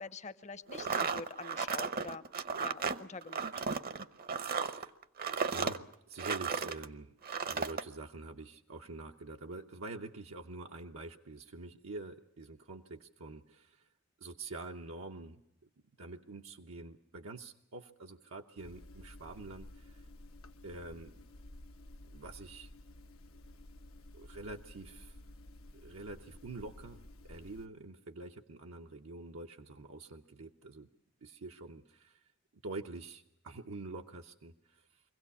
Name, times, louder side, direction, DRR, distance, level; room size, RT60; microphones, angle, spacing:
voice 1, 0.0-2.2 2.6-3.5, left 4 dB, 35° left, 14 dB, 0.8 m, -46 dB
sound 1, 0.7-6.9 7.2-7.8, right 5 dB, 45° right, 0.8 m, -35 dB
voice 2, 4.5-4.9 5.5-7.1 7.4-13.9 14.2-15.4 16.0-20.0 20.6-21.2 22.0-22.7 24.1-25.2 25.7-30.9 31.2-32.3 32.6-35.0, right 2 dB, 80° right, 2 dB, 0.9 m, -46 dB
sound 2, 18.6-27.7, left 1 dB, 80° left, 1.0 m, -53 dB
24.5 x 16.5 x 8.4 m, 0.85 s
head